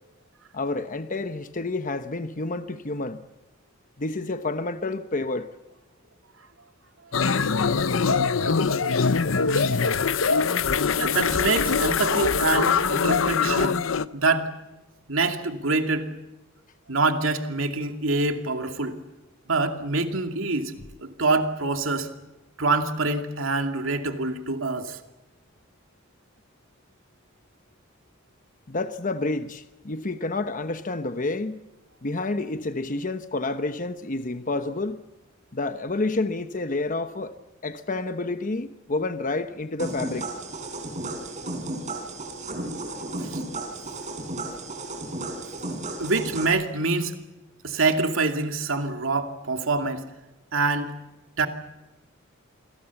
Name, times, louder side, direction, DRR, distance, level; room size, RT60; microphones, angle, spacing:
voice 1, 0.5-3.2 4.0-5.5 8.4-8.5 28.7-31.6 32.0-35.0 35.5-37.3 37.6-40.3, left 2 dB, 40° left, 1.0 m, -29 dB
sound 1, 7.1-14.1, left 5 dB, 75° left, 0.8 m, -23 dB
voice 2, 11.0-13.8 14.1-14.5 15.1-16.1 16.9-19.0 19.5-20.7 21.0-22.1 22.6-25.0 43.2-43.4 46.0-47.1 47.6-50.0 50.5-50.9 51.4-51.5, right 3 dB, 85° right, 2.5 m, -25 dB
sound 2, 39.8-46.5, right 2 dB, 40° right, 5.2 m, -34 dB
28.0 x 22.0 x 7.2 m
head